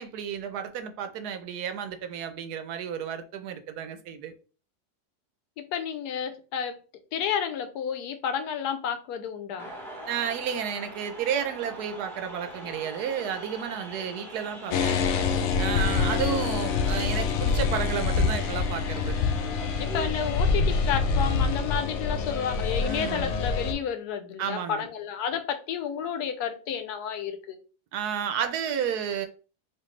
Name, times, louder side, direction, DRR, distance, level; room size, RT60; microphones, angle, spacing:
voice 1, 0.0-4.3 10.1-15.0 15.6-19.2 22.8-23.4 24.4-24.9 27.9-29.3, right 8 dB, 85° right, 1.2 m, -32 dB
voice 2, 5.6-6.8 7.1-9.7 19.8-27.6, left 8 dB, 90° left, 1.1 m, -31 dB
sound 1, 9.6-23.8, right 1 dB, ahead, 0.9 m, -44 dB
sound 2, 14.7-23.7, left 5 dB, 70° left, 0.6 m, -26 dB
4.3 x 2.7 x 3.2 m
omnidirectional pair, 1.6 m